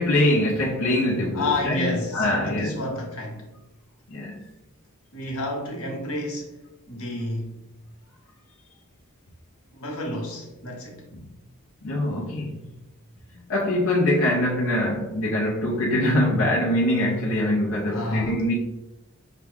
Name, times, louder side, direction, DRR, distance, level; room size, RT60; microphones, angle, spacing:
voice 1, 0.0-2.8 4.1-4.4 11.8-12.6 13.5-18.5, left 1 dB, 65° left, 0.6 m, -23 dB
voice 2, 1.3-3.5 5.1-6.5 6.9-7.5 9.7-11.1 17.9-18.4, left 1 dB, 90° left, 1.1 m, -30 dB
5.8 x 2.2 x 3.4 m
head